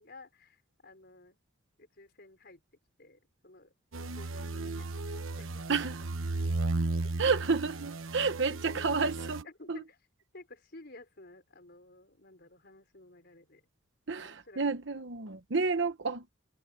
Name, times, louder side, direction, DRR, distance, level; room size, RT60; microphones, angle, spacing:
voice 1, 0.0-1.4 1.8-2.6 3.0-3.7 4.0-5.6 7.0-7.2 8.2-10.0 10.3-13.7 14.2-14.6 15.8-15.9, left 2 dB, 55° left, 5.4 m, -54 dB
sound 1, 3.9-9.4, right 2 dB, 85° right, 1.1 m, -35 dB
voice 2, 7.2-9.4 9.7-9.8 14.1-16.3, right 4 dB, 60° right, 1.1 m, -30 dB
head